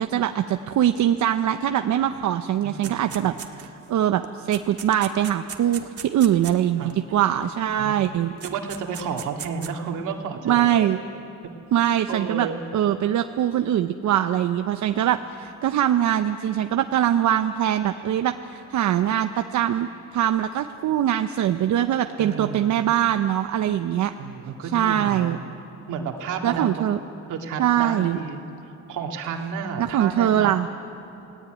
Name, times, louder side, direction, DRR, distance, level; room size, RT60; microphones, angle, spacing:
voice 1, 0.0-8.3 10.4-11.0 11.7-12.5 12.7-24.1 24.7-25.4 26.4-27.0 27.6-28.2 29.8-30.7, right 11 dB, 70° right, 7 dB, 0.9 m, -22 dB
voice 2, 2.6-3.2 6.8-6.9 7.8-8.0 8.4-10.7 11.8-12.7 22.2-22.8 24.2-25.4 25.9-26.8 27.3-28.4 28.9-30.5, right 6 dB, 85° right, 3 dB, 2.5 m, -31 dB
sound 1, 2.8-3.9 4.2-7.0 8.0-8.1 8.4-9.7, right 8 dB, 50° right, 1.9 m, -38 dB
29.5 x 18.5 x 9.2 m, 3.0 s
cardioid pair, 90°, 30 cm